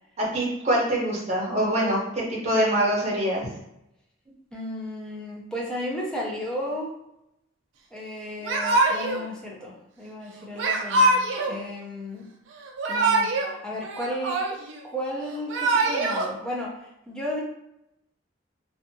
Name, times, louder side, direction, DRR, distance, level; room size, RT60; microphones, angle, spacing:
voice 1, 0.2-3.5, right 1 dB, 35° right, -5 dB, 0.8 m, -24 dB
voice 2, 4.5-6.9 7.9-12.3 12.9-14.4 14.8-17.4, left 1 dB, 5° left, -4 dB, 0.5 m, -34 dB
Yell / Crying sobbing, 8.4-9.2 10.6-11.6 12.6-13.5 13.8-14.8 15.3-16.3, right 2 dB, 65° right, 0.4 m, -23 dB
2.6 x 2.4 x 2.6 m, 0.83 s
head